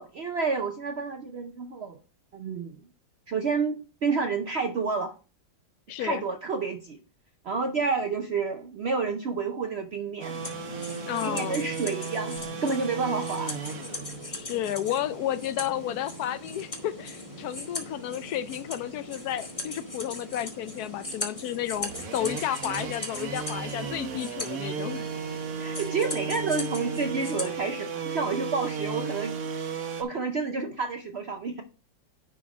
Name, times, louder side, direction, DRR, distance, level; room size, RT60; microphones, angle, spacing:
voice 1, 0.0-2.0 2.3-2.8 3.3-5.1 6.0-7.0 7.4-10.3 11.2-13.5 25.6-29.4 30.0-31.6, right 4 dB, 80° right, 0.5 m, -29 dB
voice 2, 5.9-6.2 11.0-11.7 14.3-25.1, left 12 dB, 70° left, 0.9 m, -32 dB
sound 1, 10.2-30.0, right 6 dB, 55° right, 1.3 m, -36 dB
sound 2, 10.3-27.6, left 2 dB, 20° left, 1.1 m, -39 dB
10.0 x 3.8 x 4.8 m
omnidirectional pair, 2.0 m